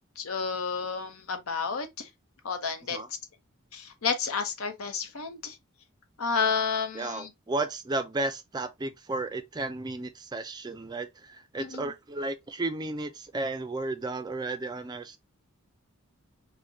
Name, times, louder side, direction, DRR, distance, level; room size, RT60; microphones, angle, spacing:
voice 1, 0.2-1.9 2.4-3.0 3.7-5.5 6.2-7.3 11.6-11.8, left 5 dB, 80° left, 0.8 m, -30 dB
voice 2, 6.9-15.2, right 2 dB, 20° right, 0.4 m, -33 dB
4.9 x 2.1 x 2.6 m
head